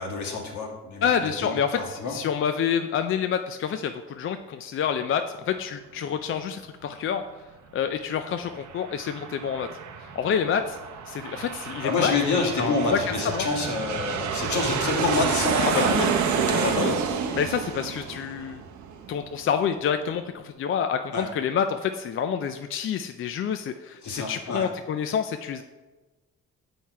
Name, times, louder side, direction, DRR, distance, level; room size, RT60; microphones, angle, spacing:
voice 1, 0.0-1.1 1.7-2.1 11.8-15.9 16.3-17.0 21.1-21.3 24.0-24.7, left 3 dB, 70° left, 0 dB, 1.6 m, -27 dB
voice 2, 1.0-7.2 7.7-9.7 10.0-10.8 11.1-12.1 12.6-13.5 15.6-16.1 16.6-17.0 17.3-18.6 19.1-25.6, left 7 dB, 45° left, 8 dB, 0.4 m, -28 dB
Aircraft, 8.3-19.5, right 7 dB, 70° right, 0.7 m, -29 dB
6.4 x 4.3 x 4.6 m, 1.2 s
cardioid pair, 90°, 30 cm